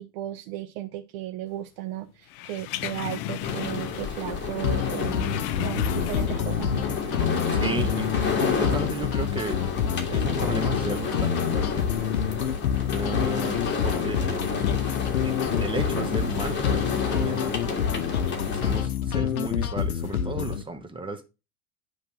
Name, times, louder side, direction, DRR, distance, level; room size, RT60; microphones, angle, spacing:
voice 1, 0.0-7.2 7.6-7.9, right 13 dB, 50° right, 0.7 m, -35 dB
sound 1, 2.3-4.2 4.5-6.5 6.9-7.0, left 14 dB, 40° left, 0.6 m, -34 dB
sound 2, 3.4-18.9, left 5 dB, 25° left, 2.1 m, -30 dB
sound 3, 4.6-20.6, left 8 dB, 75° left, 0.7 m, -27 dB
voice 2, 7.5-9.6 10.1-11.9 12.9-13.6 13.8-14.4 15.2-17.9 18.5-21.2, right 2 dB, 10° right, 1.0 m, -34 dB
9.5 x 3.2 x 5.9 m
figure-of-eight pair, 85°, 43 cm